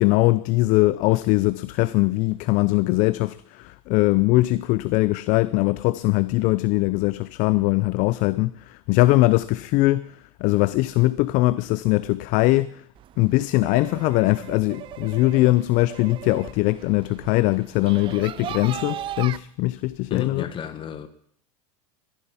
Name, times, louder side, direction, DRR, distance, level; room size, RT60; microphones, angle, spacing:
voice 1, 0.0-12.8 13.2-20.5, left 19 dB, 45° left, 0.5 m, -21 dB
sound 1, 12.9-19.4, right 12 dB, 30° right, 0.5 m, -38 dB
voice 2, 20.1-21.1, left 8 dB, 25° left, 1.4 m, -32 dB
15.0 x 10.5 x 5.7 m
supercardioid pair, 125°, 19 cm